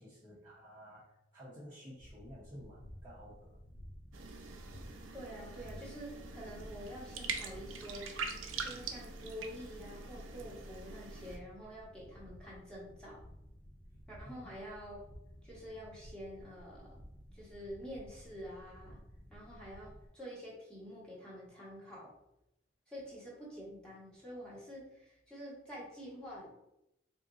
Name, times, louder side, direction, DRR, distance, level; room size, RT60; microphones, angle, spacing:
voice 1, 0.0-3.6 14.2-14.5, equal, 15° right, -10 dB, 0.9 m, -52 dB
sound 1, 2.0-20.1, equal, 40° left, 1.0 m, -54 dB
sound 2, 4.1-11.4, right 4 dB, 75° right, 0.6 m, -44 dB
voice 2, 5.1-8.1 8.6-13.2 14.1-15.1 15.4-17.0 17.3-19.0 19.3-22.1 22.9-26.5, equal, 5° left, -6 dB, 1.4 m, -48 dB
3.6 x 2.7 x 3.9 m, 0.85 s
head